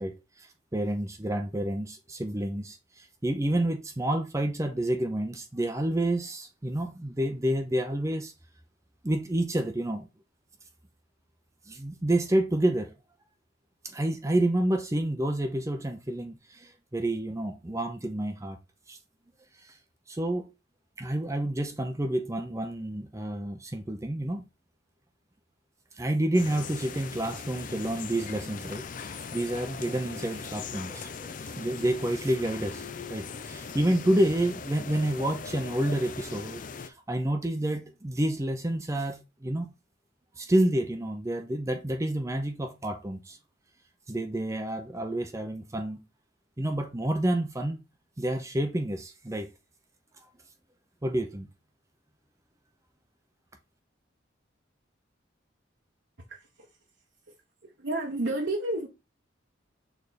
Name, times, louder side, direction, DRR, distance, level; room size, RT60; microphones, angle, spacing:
voice 1, 0.0-8.3 9.0-10.0 11.7-12.9 13.8-18.6 18.9-19.0 19.6-19.7 20.1-20.5 21.0-24.4 26.0-39.7 40.4-43.4 44.1-46.0 46.6-47.8 48.2-49.5 51.0-51.5, right 1 dB, 15° right, 0.6 m, -29 dB
sound 1, 26.3-36.9, left 5 dB, 45° left, 0.5 m, -40 dB
voice 2, 56.3-56.7 57.6-58.9, right 2 dB, 70° right, 1.0 m, -31 dB
6.6 x 3.5 x 4.1 m
head